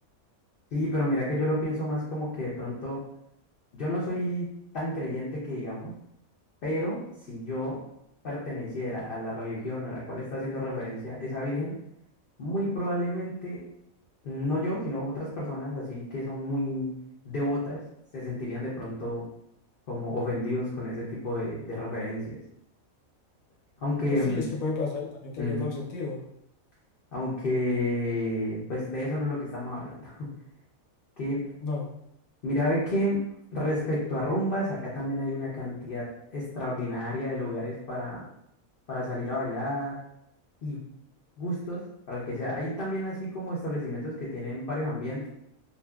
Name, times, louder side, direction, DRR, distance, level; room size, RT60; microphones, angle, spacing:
voice 1, 0.7-3.0 3.7-4.5 4.7-5.9 6.6-7.8 8.2-11.7 12.4-13.6 14.2-16.9 17.2-17.8 18.1-19.2 19.9-22.4 23.8-24.4 25.4-25.7 27.1-30.3 31.2-31.5 32.4-33.2 33.5-38.2 38.9-40.0 40.6-40.8 41.4-41.8 42.1-45.3, left 1 dB, 55° left, -7 dB, 0.7 m, -31 dB
voice 2, 24.0-26.2 31.6-31.9, left 3 dB, 75° left, -2 dB, 1.1 m, -32 dB
2.6 x 2.5 x 2.2 m, 0.76 s
omnidirectional pair, 1.5 m